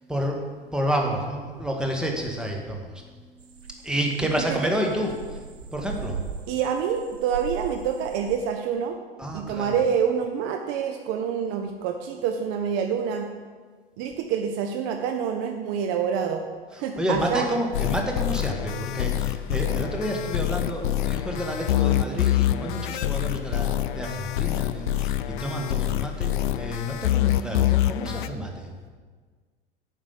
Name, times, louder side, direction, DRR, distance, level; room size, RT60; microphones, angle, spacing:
voice 1, 0.1-3.1 3.5-6.2 9.2-9.9 16.7-28.7, equal, 5° right, 1 dB, 1.4 m, -30 dB
sound 1, 3.4-8.4, right 6 dB, 90° right, 0.5 m, -38 dB
voice 2, 6.5-9.0 9.3-13.3 14.0-16.4 16.7-17.5, right 7 dB, 40° right, 5 dB, 0.7 m, -27 dB
sound 2, 17.7-28.3, left 13 dB, 55° left, 0.5 m, -25 dB
8.8 x 5.4 x 6.9 m, 1.5 s
figure-of-eight pair, 85°, 30 cm